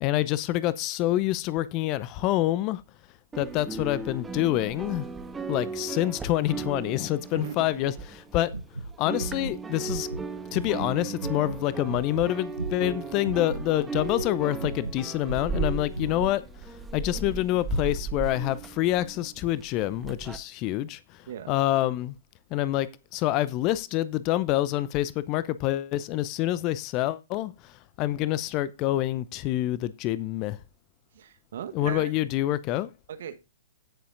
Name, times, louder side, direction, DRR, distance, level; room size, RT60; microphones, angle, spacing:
voice 1, 0.0-2.8 3.4-5.1 5.5-8.5 9.0-10.1 10.5-16.4 16.9-22.2 22.5-30.6 31.7-32.9, left 14 dB, 30° left, 0.6 m, -27 dB
sound 1, 3.3-8.7 8.9-20.4, right 4 dB, 10° right, 1.2 m, -36 dB
voice 2, 7.3-7.8 21.3-21.5 31.1-32.1 33.1-33.5, right 9 dB, 55° right, 1.3 m, -38 dB
sound 2, 8.5-10.9 11.2-11.6 11.9-13.0 13.2-14.3 14.6-16.4, right 2 dB, 85° right, 0.8 m, -35 dB
17.0 x 6.9 x 2.6 m
figure-of-eight pair, 115°, 0 cm